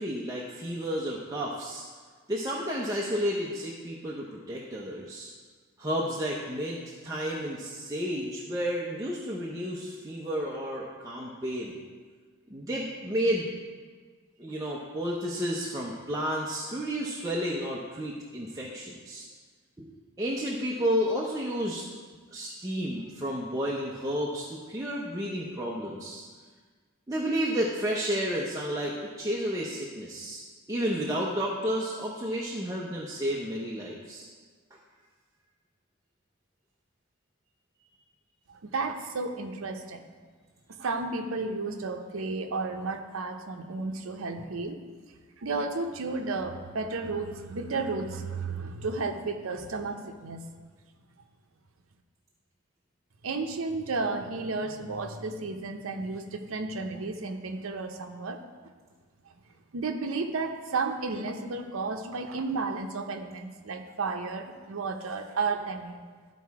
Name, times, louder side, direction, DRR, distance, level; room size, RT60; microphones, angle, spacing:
voice 1, 0.0-1.8 2.3-5.3 5.8-11.8 12.5-13.5 14.4-19.3 19.8-19.9 20.2-21.8 22.3-26.2 27.1-30.4 30.7-34.3, equal, 15° right, -4 dB, 0.7 m, -31 dB
voice 2, 38.5-40.0 40.8-44.8 45.4-50.4 53.2-58.4 59.7-66.0, right 3 dB, 80° right, 5 dB, 0.7 m, -33 dB
12.0 x 4.2 x 4.7 m, 1.5 s
head